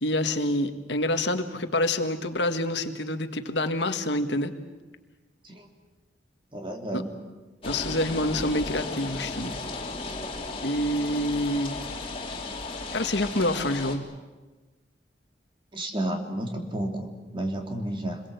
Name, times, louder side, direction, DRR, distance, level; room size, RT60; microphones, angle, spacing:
voice 1, 0.0-4.5 6.9-7.0 7.7-9.6 10.6-11.8 12.9-14.0, left 1 dB, 75° left, 7 dB, 1.7 m, -27 dB
voice 2, 6.5-7.1 15.7-18.2, right 1 dB, 30° right, 2 dB, 3.1 m, -31 dB
sound 1, 7.6-14.0, left 3 dB, 30° left, 3.1 m, -35 dB
27.0 x 21.5 x 8.1 m, 1.2 s
head